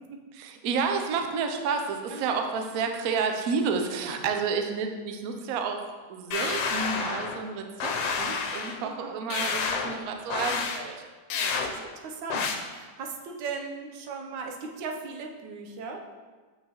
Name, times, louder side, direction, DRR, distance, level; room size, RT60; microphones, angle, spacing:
voice 1, 0.3-11.0, right 5 dB, 70° right, 5 dB, 0.9 m, -30 dB
sound 1, 6.3-7.4 7.8-8.8 9.3-10.0 10.3-10.8 11.3-11.7 12.3-12.6, left 5 dB, 85° left, 1.3 m, -29 dB
voice 2, 8.8-9.2 11.5-16.0, right 4 dB, 90° right, 2 dB, 1.4 m, -38 dB
6.3 x 5.7 x 2.9 m, 1.4 s
omnidirectional pair, 1.9 m